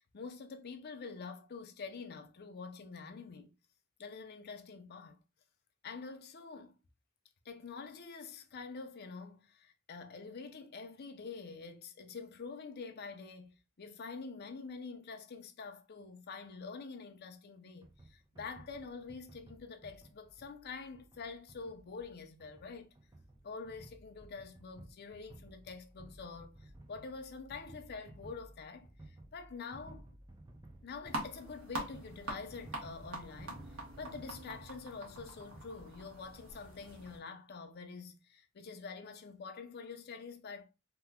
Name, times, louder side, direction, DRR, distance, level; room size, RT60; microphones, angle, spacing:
voice 1, 0.0-3.5 4.0-5.2 5.8-6.7 7.4-22.9 23.4-30.1 30.8-40.6, left 4 dB, 50° left, 0.5 m, -46 dB
sound 1, 17.8-36.2, right 1 dB, 20° right, 0.6 m, -56 dB
sound 2, 31.1-37.2, right 1 dB, 75° right, 1.0 m, -45 dB
2.9 x 2.2 x 3.5 m
head